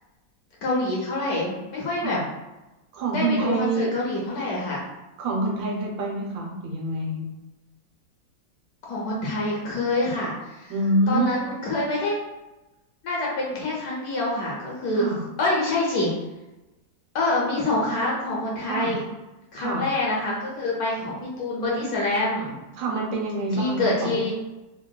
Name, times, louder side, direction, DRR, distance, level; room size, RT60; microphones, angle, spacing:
voice 1, 0.6-2.2 3.1-4.8 8.8-10.7 11.1-12.2 13.0-16.1 17.1-19.0 19.5-22.6 23.5-24.3, left 2 dB, 65° left, -4 dB, 1.0 m, -26 dB
voice 2, 2.9-3.9 5.2-7.3 10.7-11.5 14.9-15.2 18.7-18.9 19.6-19.9 22.7-24.3, right 2 dB, 85° right, -1 dB, 1.4 m, -26 dB
3.5 x 2.3 x 2.2 m, 1.0 s
omnidirectional pair, 2.0 m